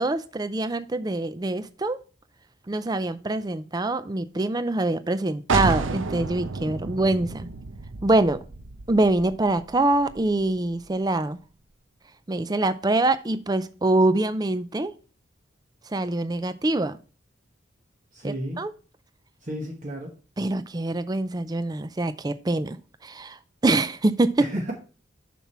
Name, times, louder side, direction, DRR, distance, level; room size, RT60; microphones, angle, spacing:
voice 1, 0.0-2.0 2.7-7.5 8.0-8.4 8.9-11.4 12.3-14.9 15.9-17.0 18.2-18.7 20.4-22.8 23.0-23.4 23.6-24.5, right 2 dB, 20° right, 0.4 m, -24 dB
sound 1, 5.5-11.0, right 3 dB, 90° right, 0.7 m, -31 dB
voice 2, 18.1-18.6 19.5-20.1 24.4-24.7, equal, 40° right, 1.0 m, -32 dB
7.0 x 6.0 x 4.2 m
head